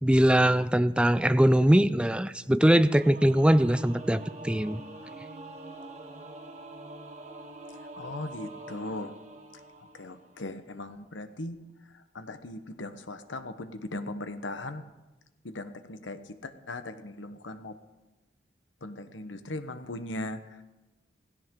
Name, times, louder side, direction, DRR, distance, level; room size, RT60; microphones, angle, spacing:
voice 1, 0.0-4.8, right 1 dB, 5° right, 13 dB, 0.4 m, -22 dB
Singing / Musical instrument, 2.7-10.5, right 2 dB, 35° right, 1.5 m, -44 dB
voice 2, 8.0-9.1 9.9-11.6 11.9-14.8 15.4-17.8 18.8-20.6, left 2 dB, 90° left, 10 dB, 1.1 m, -38 dB
17.0 x 16.0 x 3.8 m, 1.1 s
head